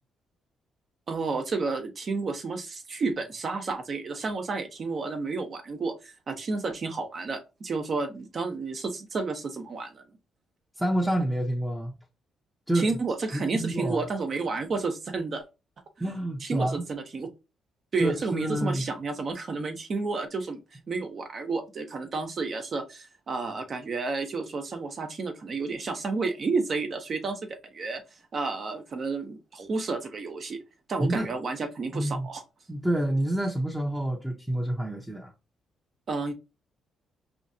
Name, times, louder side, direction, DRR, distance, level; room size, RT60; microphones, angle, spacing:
voice 1, 1.1-10.0 12.7-15.4 16.4-17.3 17.9-28.0 28.3-30.6 30.9-32.4 36.1-36.3, right 4 dB, 45° right, 1.0 m, -31 dB
voice 2, 10.8-11.9 12.7-12.9 13.3-14.0 16.0-16.8 18.0-18.8 31.0-31.3 31.9-32.3 32.7-35.3, right 1 dB, 5° right, 0.8 m, -28 dB
4.9 x 3.0 x 2.7 m
cardioid pair, 90°, 0 cm